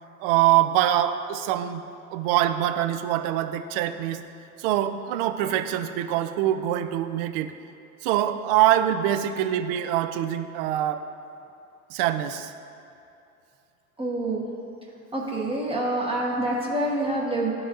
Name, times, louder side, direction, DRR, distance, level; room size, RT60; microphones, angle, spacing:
voice 1, 0.2-1.8 2.1-4.2 4.6-7.5 8.0-11.1 11.9-12.5, right 12 dB, 45° right, 9 dB, 0.4 m, -24 dB
voice 2, 14.0-14.4 15.1-17.5, right 1 dB, 15° right, -4 dB, 0.8 m, -26 dB
12.0 x 4.0 x 2.6 m, 2.7 s
hypercardioid pair, 95°, 44 cm